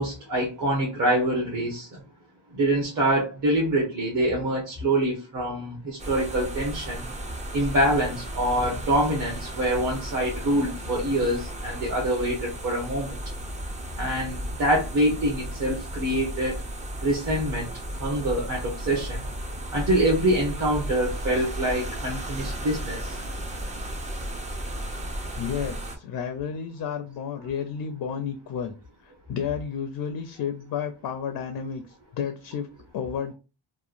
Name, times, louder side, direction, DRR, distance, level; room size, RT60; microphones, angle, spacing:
voice 1, 0.0-1.9 2.5-7.0 7.5-13.1 14.0-16.6 17.0-17.7 18.0-19.2 19.7-23.1, right 1 dB, 40° right, -3 dB, 0.9 m, -25 dB
sound 1, 6.0-26.0, right 1 dB, 15° right, 0.3 m, -34 dB
voice 2, 25.4-28.7 29.3-31.8 32.1-33.3, left 7 dB, 50° left, 8 dB, 0.5 m, -31 dB
2.9 x 2.2 x 2.4 m, 0.31 s
cardioid pair, 115°, 50 cm